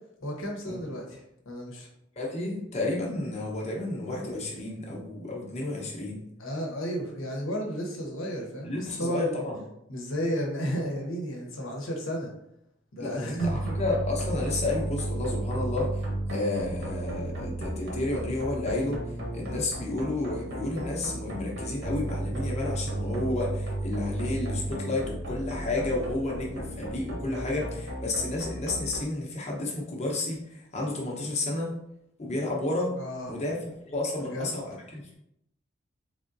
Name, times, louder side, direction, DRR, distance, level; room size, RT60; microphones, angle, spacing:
voice 1, 0.2-1.9 6.4-9.4 9.9-12.3 12.9-13.6 33.0-33.4 34.2-34.5, equal, 75° left, 0 dB, 1.0 m, -33 dB
voice 2, 2.2-6.2 8.6-9.6 13.0-19.0 19.3-31.7 32.2-33.0 33.3-35.1, left 2 dB, 35° left, -2 dB, 0.8 m, -31 dB
sound 1, 13.4-29.0, right 1 dB, 60° right, 1.0 m, -34 dB
3.7 x 3.6 x 2.6 m, 0.78 s
head